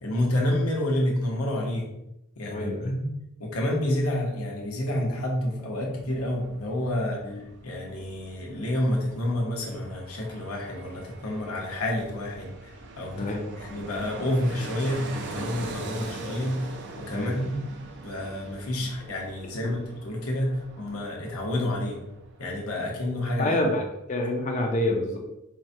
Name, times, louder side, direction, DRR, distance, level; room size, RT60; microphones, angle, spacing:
voice 1, 0.0-1.9 2.4-3.1 3.4-7.3 7.6-12.7 13.0-13.3 13.6-17.6 18.0-22.0 22.4-23.7, left 1 dB, 80° left, -2 dB, 0.9 m, -29 dB
voice 2, 2.5-2.9 7.2-7.4 13.2-13.4 17.1-17.5 18.8-18.9 19.6-19.7 23.4-23.8 24.1-25.2, left 1 dB, 35° left, 1 dB, 0.4 m, -27 dB
Fixed-wing aircraft airplane, 5.7-22.7 23.0-23.1, right 3 dB, 55° right, 0.4 m, -42 dB
4.6 x 2.2 x 2.7 m, 0.87 s
head